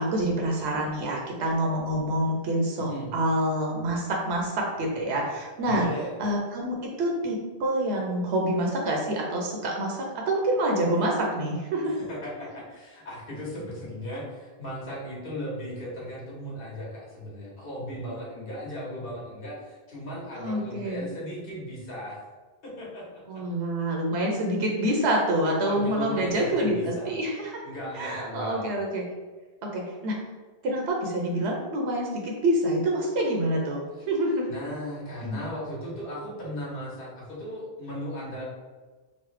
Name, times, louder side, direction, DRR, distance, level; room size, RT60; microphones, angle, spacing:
voice 1, 0.0-5.9 6.2-12.0 20.4-21.1 23.3-27.5 27.9-29.0 29.6-30.2 30.6-34.5 35.2-35.4, right 1 dB, 85° right, 0 dB, 0.8 m, -27 dB
voice 2, 2.8-3.1 5.7-6.2 12.1-22.2 22.6-23.2 25.6-27.1 27.6-28.7 34.5-38.4, equal, 60° left, -6 dB, 1.1 m, -36 dB
3.1 x 2.0 x 3.1 m, 1.3 s
omnidirectional pair, 1.1 m